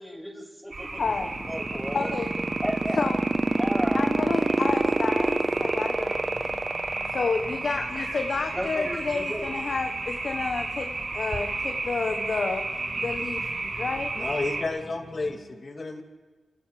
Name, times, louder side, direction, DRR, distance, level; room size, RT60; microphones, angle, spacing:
voice 1, 0.0-1.0 1.5-2.1 2.6-3.0 3.6-4.1 4.6-4.7 8.5-9.5, equal, ahead, -2 dB, 7.6 m, -34 dB
sound 1, 0.7-14.6, right 3 dB, 55° right, 5.5 m, -33 dB
sound 2, 0.9-15.4, left 1 dB, 25° left, 5.6 m, -47 dB
voice 2, 1.0-1.3 1.9-2.3 3.0-3.2 3.9-6.5 7.1-12.6 13.0-14.1, left 4 dB, 65° left, 4 dB, 1.4 m, -30 dB
sound 3, 1.2-7.8, right 2 dB, 30° right, 1.1 m, -24 dB
voice 3, 14.1-16.0, left 3 dB, 50° left, 2 dB, 3.0 m, -31 dB
29.5 x 29.5 x 3.5 m, 1.4 s
cardioid pair, 60°, 0 cm